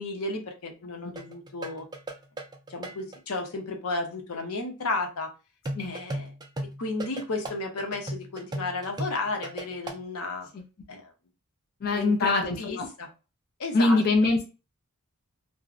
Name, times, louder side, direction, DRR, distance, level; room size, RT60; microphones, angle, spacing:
voice 1, 0.0-1.9 2.7-5.3 5.8-6.3 6.8-10.5 10.9-11.1 11.9-13.1 13.6-14.0, left 3 dB, 85° left, 3 dB, 0.7 m, -33 dB
sound 1, 1.1-3.2 5.6-10.0, right 1 dB, 20° right, 0.3 m, -36 dB
voice 2, 11.8-12.9 13.7-14.5, left 3 dB, 45° left, 2 dB, 0.4 m, -23 dB
2.5 x 2.0 x 2.4 m, 0.31 s
head